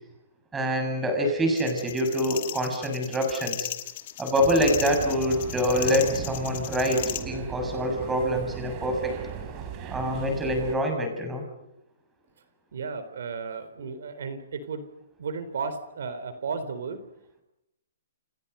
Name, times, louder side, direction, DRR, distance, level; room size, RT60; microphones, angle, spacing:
voice 1, 0.5-3.7 4.2-9.2 9.9-11.4, equal, 10° right, 4 dB, 6.7 m, -25 dB
sound 1, 1.6-7.2, left 14 dB, 40° left, 2.3 m, -36 dB
sound 2, 4.4-10.8, right 7 dB, 25° right, 4.1 m, -37 dB
voice 2, 12.7-14.8 15.2-17.0, right 5 dB, 70° right, 12 dB, 3.5 m, -34 dB
29.5 x 29.5 x 5.6 m, 0.83 s
hypercardioid pair, 160°, 0 cm